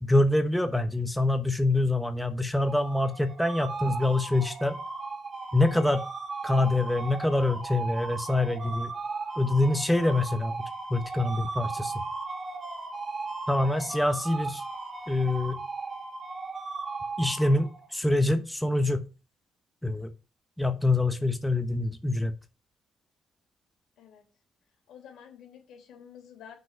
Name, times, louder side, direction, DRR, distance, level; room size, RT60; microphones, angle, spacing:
voice 1, 0.0-4.8 5.5-6.1 6.4-8.9 9.4-10.5 10.9-11.9 13.5-14.6 15.1-15.6 17.2-19.1 19.8-20.1 20.6-22.3, left 2 dB, 5° left, 8 dB, 1.0 m, -25 dB
sound 1, 2.6-17.9, right 3 dB, 40° right, 1.6 m, -37 dB
voice 2, 24.9-26.5, left 8 dB, 80° left, 3 dB, 3.4 m, -50 dB
6.2 x 5.2 x 6.7 m, 0.31 s
cardioid pair, 80°, 0 cm